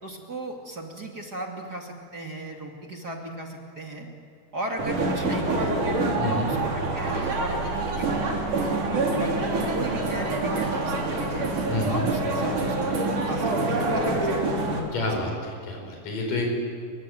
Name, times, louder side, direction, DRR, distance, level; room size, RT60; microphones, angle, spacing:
voice 1, 0.0-4.1 4.5-5.7 6.3-8.1 8.8-11.4 11.9-12.9 13.2-14.4 15.1-15.2, right 1 dB, 30° right, 1 dB, 2.8 m, -36 dB
sound 1, 4.8-14.8, right 2 dB, 70° right, 5.1 m, -26 dB
voice 2, 6.2-6.5 11.7-12.0 14.9-16.5, left 2 dB, 85° left, 1 dB, 6.5 m, -29 dB
29.5 x 24.5 x 7.9 m, 2.3 s
omnidirectional pair, 3.7 m